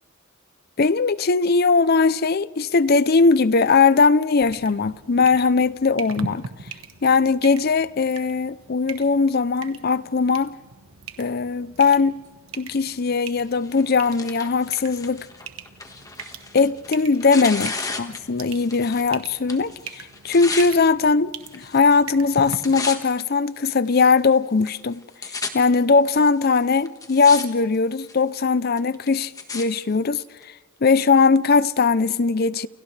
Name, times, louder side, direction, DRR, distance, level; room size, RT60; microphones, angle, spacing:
voice 1, 0.8-6.5 7.0-10.5 11.2-12.2 12.5-15.3 16.5-25.0 25.5-30.5 30.8-32.7, left 4 dB, 45° left, 0.6 m, -20 dB
sound 1, 4.4-22.6, right 5 dB, 80° right, 1.3 m, -41 dB
Tearing, 13.6-19.1 19.4-20.7 21.5-22.0 22.3-23.2 23.9-24.0 24.7-24.8 24.9-25.5 26.3-26.4 26.9-27.4 27.7-28.2 28.8-29.6 30.4-30.5, left 4 dB, 15° left, 1.6 m, -33 dB
29.5 x 29.0 x 3.3 m
head